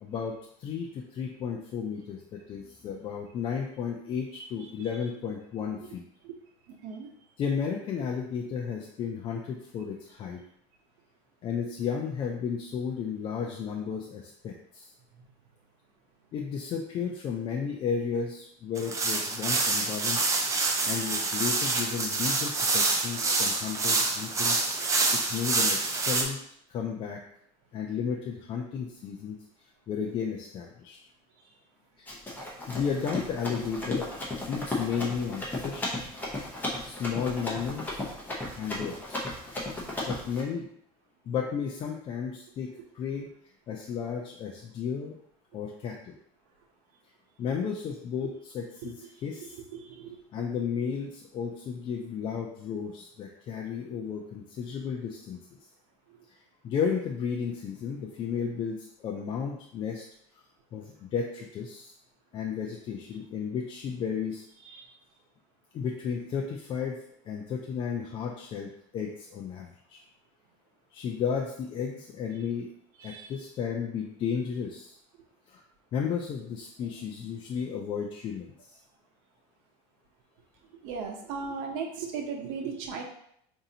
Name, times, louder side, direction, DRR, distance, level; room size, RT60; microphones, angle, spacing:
voice 1, 0.0-6.0 7.4-10.4 11.4-14.9 16.3-20.2 20.8-24.6 25.1-26.4 26.7-27.2 27.7-29.4 29.9-31.0 32.0-32.1 32.7-34.1 34.4-36.1 36.8-38.0 38.6-39.3 40.1-40.7 41.3-42.7 42.9-43.3 43.7-45.1 45.5-46.1 47.4-49.6 50.3-55.4 56.6-60.0 60.7-61.9 62.3-64.5 65.7-67.0 67.3-70.0 70.9-72.7 73.0-74.9 75.5-75.6 75.9-78.8, left 6 dB, 35° left, 1 dB, 0.4 m, -33 dB
sound 1, 18.8-26.2, right 3 dB, 20° right, 0.5 m, -27 dB
Run, 32.1-40.4, left 2 dB, 10° left, 0.8 m, -35 dB
voice 2, 49.4-50.2 64.6-64.9 73.0-73.3 80.8-83.0, right 5 dB, 75° right, 2 dB, 0.8 m, -37 dB
4.9 x 2.7 x 2.8 m, 0.70 s
cardioid pair, 145°, 15 cm